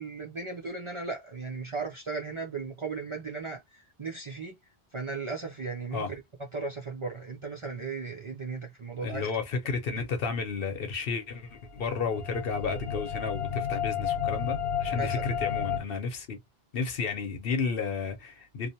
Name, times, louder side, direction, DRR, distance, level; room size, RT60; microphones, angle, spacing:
voice 1, 0.0-4.5 4.9-6.2 6.5-9.3 14.9-15.2, right 4 dB, 45° right, 0.4 m, -36 dB
voice 2, 9.0-16.4 16.7-18.7, left 5 dB, 65° left, 0.9 m, -32 dB
sound 1, 11.4-15.8, left 8 dB, 85° left, 1.0 m, -32 dB
2.7 x 2.1 x 2.7 m
omnidirectional pair, 1.0 m